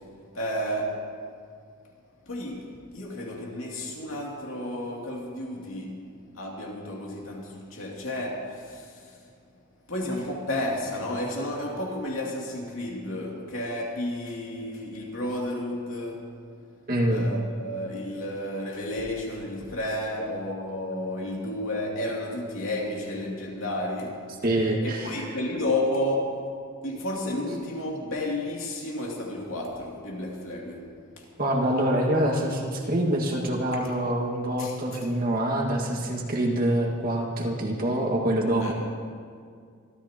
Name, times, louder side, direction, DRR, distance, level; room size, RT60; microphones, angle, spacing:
voice 1, 0.3-1.1 2.3-6.0 6.3-9.1 9.9-16.3 17.1-24.2 24.8-26.4 26.8-30.8 31.2-31.3 34.6-34.7 38.6-38.7, left 1 dB, 65° left, -2 dB, 2.7 m, -32 dB
voice 2, 16.9-17.3 24.4-25.2 31.4-38.7, right 1 dB, 45° right, -1 dB, 1.9 m, -25 dB
26.0 x 13.5 x 3.0 m, 2.1 s
head